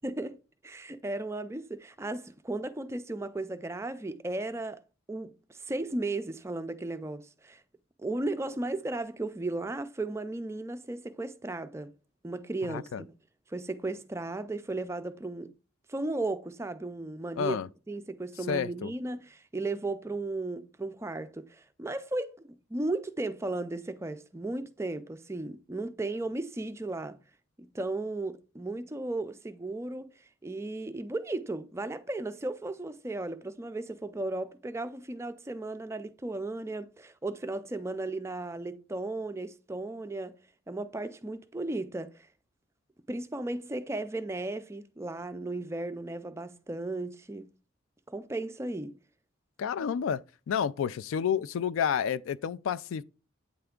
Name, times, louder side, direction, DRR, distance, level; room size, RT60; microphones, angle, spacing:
voice 1, 0.0-0.4 0.6-4.8 5.1-7.6 8.0-11.9 12.2-13.1 13.5-15.5 15.9-17.6 17.9-27.2 27.6-40.4 40.7-42.3 43.1-47.5 48.1-49.0, right 2 dB, 15° right, 0.3 m, -35 dB
voice 2, 12.7-13.0 17.4-17.7 18.5-18.9 49.6-53.0, left 7 dB, 80° left, 0.3 m, -30 dB
8.5 x 3.4 x 3.7 m
head